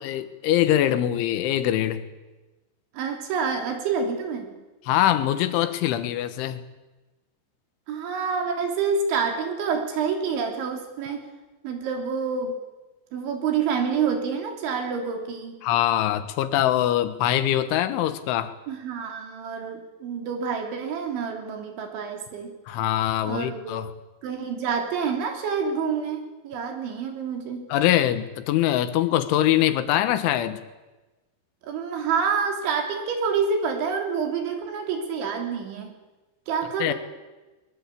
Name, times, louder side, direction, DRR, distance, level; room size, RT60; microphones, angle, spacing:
voice 1, 0.0-2.0 4.9-6.6 15.6-18.5 22.7-23.9 27.7-30.6 36.8-36.9, left 12 dB, 90° left, 3.7 m, -23 dB
voice 2, 2.9-4.5 7.9-11.3 11.6-12.6 13.1-15.6 18.7-22.5 23.2-23.8 24.2-27.7 31.6-35.9 36.5-36.9, right 5 dB, 80° right, 5.6 m, -27 dB
22.5 x 21.5 x 8.5 m
omnidirectional pair, 5.3 m